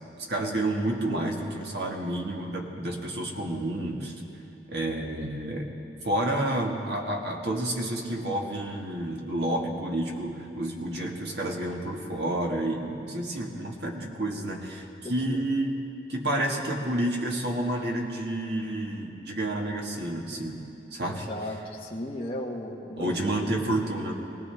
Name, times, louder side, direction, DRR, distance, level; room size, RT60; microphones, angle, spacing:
voice 1, 0.3-4.2 4.7-5.7 6.0-15.8 16.1-20.6 20.9-21.3 23.0-24.1, right 1 dB, 65° right, 0 dB, 1.8 m, -30 dB
voice 2, 15.0-15.4 21.1-24.1, left 1 dB, 30° left, -4 dB, 1.2 m, -37 dB
22.0 x 18.0 x 3.5 m, 2.8 s
head